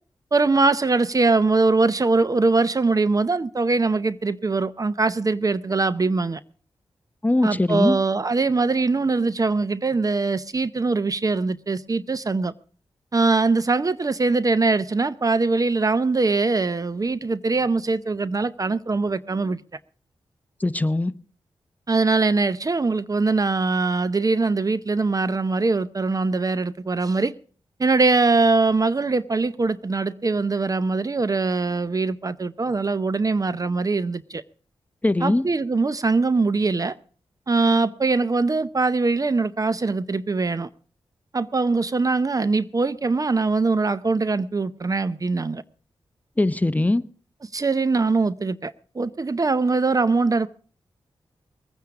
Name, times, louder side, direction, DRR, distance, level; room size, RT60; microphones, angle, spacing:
voice 1, 0.3-6.4 7.4-12.5 13.1-19.6 21.9-27.3 27.8-34.4 35.2-36.9 37.5-40.7 41.3-45.6 47.5-50.5, right 3 dB, 35° right, 0.7 m, -22 dB
voice 2, 7.2-8.0 20.6-21.1 35.0-35.5 46.4-47.0, left 2 dB, 15° left, 0.8 m, -21 dB
21.0 x 9.4 x 4.9 m
cardioid pair, 55°, 10 cm